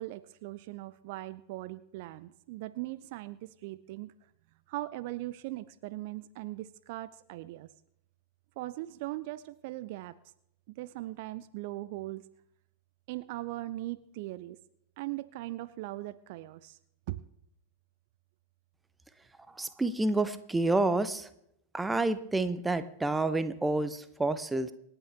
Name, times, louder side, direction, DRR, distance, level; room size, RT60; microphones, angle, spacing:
voice 1, 0.0-4.1 4.7-7.7 8.6-10.2 10.7-12.2 13.1-14.6 15.0-16.8 17.1-17.2, right 17 dB, 50° right, 16 dB, 0.4 m, -39 dB
voice 2, 19.5-21.3 21.7-24.7, right 2 dB, 10° right, 12 dB, 0.8 m, -29 dB
26.0 x 9.0 x 3.4 m, 0.77 s
figure-of-eight pair, 90°, 0 cm